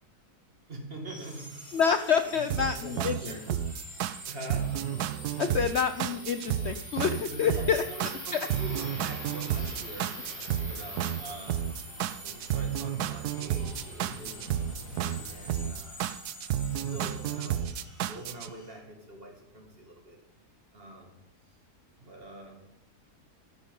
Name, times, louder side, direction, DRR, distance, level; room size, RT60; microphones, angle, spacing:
voice 1, 0.7-1.7 2.3-3.5 4.2-4.9 5.2-5.7 7.3-10.2 10.6-11.7 12.2-14.7 15.2-16.1 16.7-20.2 20.7-21.2 22.0-22.6, right 1 dB, 35° right, 2 dB, 2.4 m, -44 dB
sound 1, 1.1-18.7, equal, 10° left, 4.2 m, -45 dB
voice 2, 1.7-3.2 5.4-7.8 8.3-8.5, left 7 dB, 60° left, 10 dB, 0.7 m, -27 dB
sound 2, 2.5-18.5, right 10 dB, 80° right, 1.1 m, -32 dB
sound 3, 8.7-15.7, equal, 90° left, 4.0 m, -49 dB
13.5 x 9.2 x 5.4 m, 0.83 s
omnidirectional pair, 1.7 m